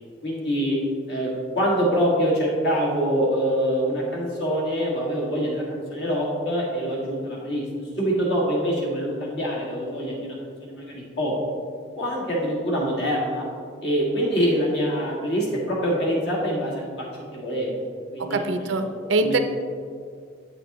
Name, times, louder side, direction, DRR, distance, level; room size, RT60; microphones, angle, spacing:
voice 1, 0.2-0.8 1.1-7.7 8.0-10.4 10.6-11.3 12.0-13.5 13.8-17.1 17.3-17.8 18.1-18.7 19.2-19.4, equal, 65° left, -4 dB, 2.0 m, -25 dB
voice 2, 18.2-19.4, right 3 dB, 85° right, 7 dB, 0.5 m, -24 dB
7.9 x 6.9 x 3.0 m, 2.1 s
head